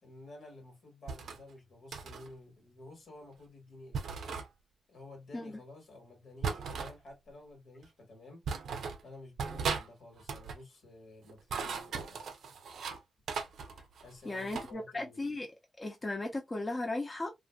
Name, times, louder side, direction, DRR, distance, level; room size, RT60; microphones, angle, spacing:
voice 1, 0.0-4.2 4.9-8.4 9.0-12.2 14.0-15.4, left 2 dB, 80° left, 1.5 m, -52 dB
sound 1, 1.1-1.4 1.9-2.3 3.9-4.5 6.4-7.0 7.8-7.9 8.5-9.0 9.4-9.9 10.2-10.6 11.3-13.0 13.3-14.7, right 5 dB, 85° right, 0.5 m, -37 dB
voice 2, 14.2-15.5 15.8-17.3, left 2 dB, 35° left, 0.7 m, -36 dB
2.5 x 2.5 x 2.2 m
cardioid pair, 55°, 0 cm